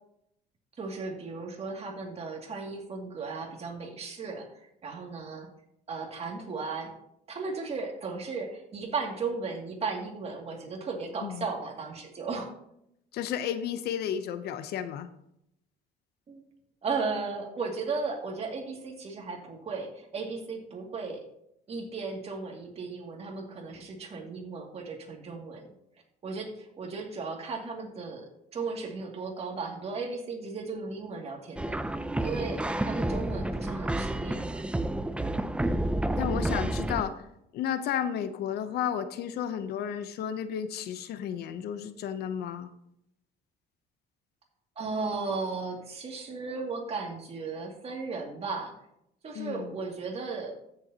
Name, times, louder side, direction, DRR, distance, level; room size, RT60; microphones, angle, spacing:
voice 1, 0.8-4.5 4.8-5.5 5.9-6.9 7.3-12.5 16.3-16.4 16.8-21.3 21.7-25.7 26.2-31.7 32.2-34.6 44.8-48.7 49.2-50.5, right 4 dB, 40° right, 1 dB, 2.4 m, -35 dB
voice 2, 13.1-15.1 36.2-37.1 37.5-42.7 49.3-49.8, left 9 dB, 70° left, 11 dB, 0.8 m, -32 dB
sound 1, 31.6-37.0, right 1 dB, 5° right, 0.5 m, -30 dB
15.0 x 7.1 x 2.9 m, 0.77 s
cardioid pair, 110°, 17 cm